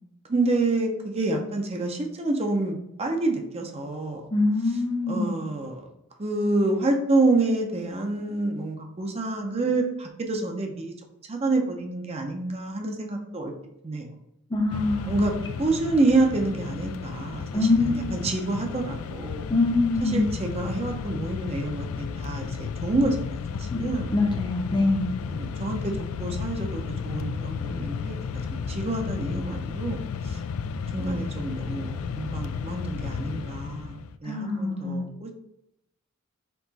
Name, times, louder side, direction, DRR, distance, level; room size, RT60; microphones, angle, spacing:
voice 1, 0.3-4.2 5.1-5.9 6.2-10.9 11.3-13.5 13.8-14.1 15.1-15.3 15.6-19.5 20.0-24.1 25.3-28.2 28.5-30.4 30.9-35.3, right 2 dB, 30° right, 2 dB, 0.6 m, -28 dB
voice 2, 4.3-5.4 14.5-15.2 17.5-18.1 19.5-20.3 23.7-23.8 24.1-25.1 34.2-35.1, left 2 dB, 20° left, 2 dB, 0.6 m, -24 dB
Mechanisms, 14.7-34.2, left 6 dB, 80° left, 0.3 m, -33 dB
4.5 x 2.9 x 4.0 m, 0.82 s
head